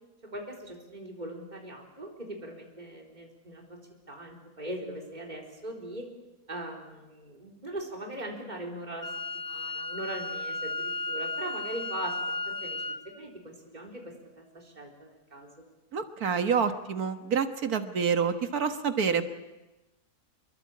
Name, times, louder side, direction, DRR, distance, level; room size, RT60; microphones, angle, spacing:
voice 1, 0.3-3.8 4.1-6.1 6.5-9.1 9.3-12.8 13.2-14.0 14.4-15.5, right 1 dB, 30° right, 0 dB, 4.3 m, -40 dB
Wind instrument woodwind instrument, 9.0-13.0, left 2 dB, 90° left, 1.9 m, -34 dB
voice 2, 15.9-19.2, right 6 dB, 90° right, 8 dB, 1.9 m, -27 dB
26.0 x 22.0 x 8.6 m, 1.1 s
omnidirectional pair, 1.5 m